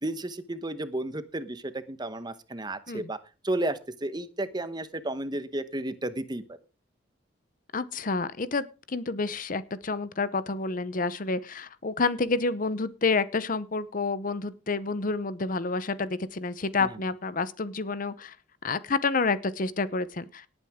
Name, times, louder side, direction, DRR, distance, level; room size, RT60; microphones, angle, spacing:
voice 1, 0.0-3.2 3.4-6.4 16.8-16.9, right 1 dB, 25° right, 12 dB, 1.1 m, -32 dB
voice 2, 7.7-18.4 18.6-20.5, left 3 dB, 45° left, 15 dB, 0.8 m, -29 dB
18.5 x 8.9 x 3.7 m, 0.32 s
head